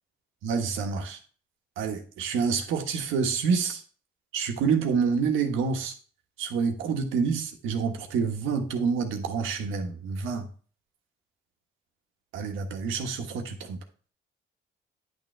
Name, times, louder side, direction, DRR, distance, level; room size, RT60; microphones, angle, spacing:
voice 1, 0.4-1.2 1.8-3.8 4.3-5.9 6.4-10.5 12.3-13.8, right 5 dB, 90° right, 1.5 m, -27 dB
10.5 x 6.7 x 3.4 m
cardioid pair, 90°, 20 cm